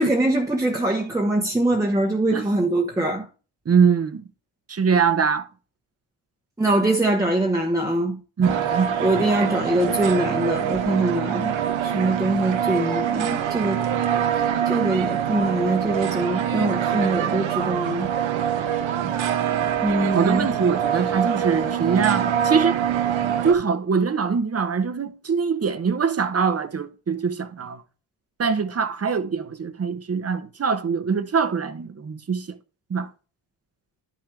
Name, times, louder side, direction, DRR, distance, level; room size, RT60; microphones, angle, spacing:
voice 1, 0.0-3.3 6.6-8.2 9.0-11.6 11.8-13.8 14.6-18.1 19.8-20.5, right 1 dB, 5° right, 1.0 m, -23 dB
voice 2, 3.7-4.2 4.7-5.5 8.4-8.9 19.0-19.1 20.1-22.8 23.4-27.8 28.4-32.6 32.9-33.1, right 6 dB, 30° right, 0.8 m, -23 dB
sound 1, 8.4-23.5, right 9 dB, 70° right, 1.1 m, -24 dB
11.5 x 6.2 x 3.3 m
cardioid pair, 125°, 48 cm